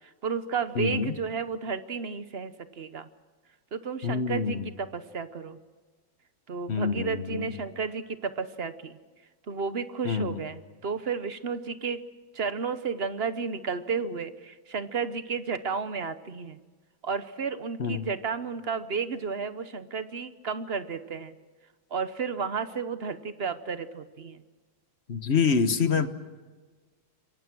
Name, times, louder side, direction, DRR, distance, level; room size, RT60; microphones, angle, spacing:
voice 1, 0.0-3.1 3.7-5.6 6.5-9.0 9.5-12.0 12.3-16.6 17.0-21.4 21.9-24.4, right 5 dB, 45° right, 12 dB, 0.9 m, -32 dB
voice 2, 0.7-1.1 4.0-4.6 6.7-7.5 10.0-10.4 17.8-18.1 25.1-26.1, left 5 dB, 40° left, 10 dB, 1.3 m, -26 dB
27.0 x 23.5 x 6.2 m, 1.3 s
omnidirectional pair, 2.1 m